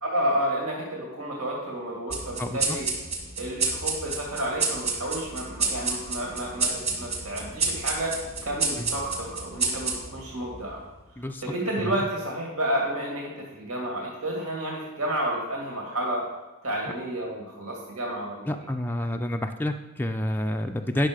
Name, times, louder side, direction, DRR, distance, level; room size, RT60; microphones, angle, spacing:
voice 1, 0.0-2.9 3.4-8.2 8.4-10.8 11.4-16.3 16.6-18.5, right 1 dB, 80° right, -2 dB, 2.1 m, -30 dB
sound 1, 2.1-11.0, right 4 dB, 25° right, 1.8 m, -30 dB
voice 2, 2.4-2.8 8.8-8.9 11.2-11.4 11.8-12.0 18.5-21.1, left 1 dB, 10° left, 4 dB, 0.4 m, -29 dB
10.0 x 6.5 x 5.0 m, 1.1 s
head